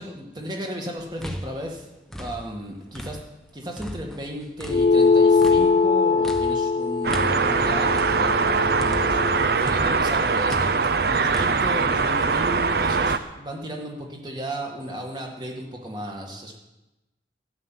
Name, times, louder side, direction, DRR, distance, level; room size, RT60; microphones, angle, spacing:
voice 1, 0.0-1.9 2.2-3.2 3.5-16.6, equal, 25° right, 0 dB, 2.0 m, -34 dB
sound 1, 1.0-3.4 3.8-9.3 9.7-11.5, equal, ahead, 0.8 m, -37 dB
sound 2, 4.7-9.5, left 4 dB, 40° left, 0.4 m, -21 dB
sound 3, 7.0-13.2, right 4 dB, 55° right, 0.6 m, -22 dB
13.0 x 7.2 x 9.2 m, 1.0 s
head